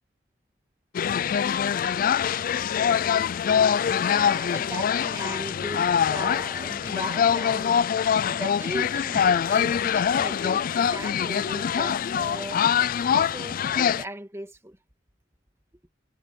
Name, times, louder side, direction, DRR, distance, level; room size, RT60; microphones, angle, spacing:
sound 1, 0.9-14.0, left 8 dB, 50° left, 0.3 m, -24 dB
voice 1, 4.0-12.7 13.1-14.8, right 1 dB, 15° right, 2.2 m, -38 dB
head